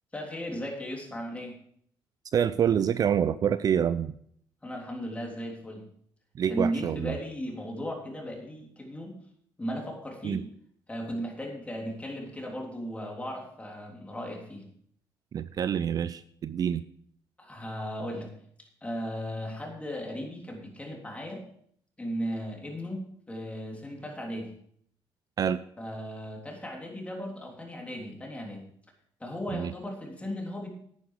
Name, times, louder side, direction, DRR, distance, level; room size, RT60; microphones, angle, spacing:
voice 1, 0.1-1.5 4.6-5.8 6.5-9.1 9.6-10.4 10.9-14.6 17.4-18.3 18.8-21.4 22.0-24.5 25.8-28.6 29.2-30.7, equal, 15° left, 0 dB, 3.4 m, -36 dB
voice 2, 2.3-4.1 6.4-7.2 10.2-10.4 15.3-16.8 25.4-25.6 29.5-29.7, right 8 dB, 45° right, 14 dB, 0.4 m, -27 dB
10.5 x 9.6 x 4.9 m, 0.65 s
cardioid pair, 95°, 9 cm